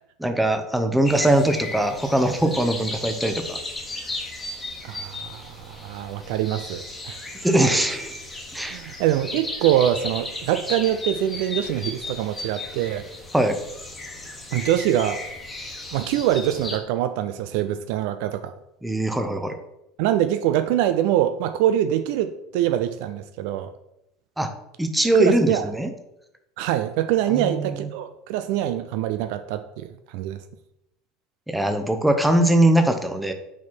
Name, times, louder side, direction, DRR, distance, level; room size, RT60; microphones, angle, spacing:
voice 1, 0.2-3.6 7.4-8.1 8.5-8.8 13.3-13.6 18.8-19.5 24.4-24.5 24.8-25.9 27.3-27.9 31.5-33.3, right 1 dB, 5° right, 7 dB, 0.8 m, -21 dB
sound 1, 1.0-16.8, left 2 dB, 15° left, 1.4 m, -35 dB
voice 2, 4.8-7.2 8.7-13.1 14.5-15.2 15.9-18.5 20.0-23.7 25.2-25.6 26.6-29.9 30.1-30.4, right 11 dB, 55° right, 11 dB, 0.3 m, -24 dB
5.9 x 4.4 x 4.3 m, 0.85 s
figure-of-eight pair, 70°, 0 cm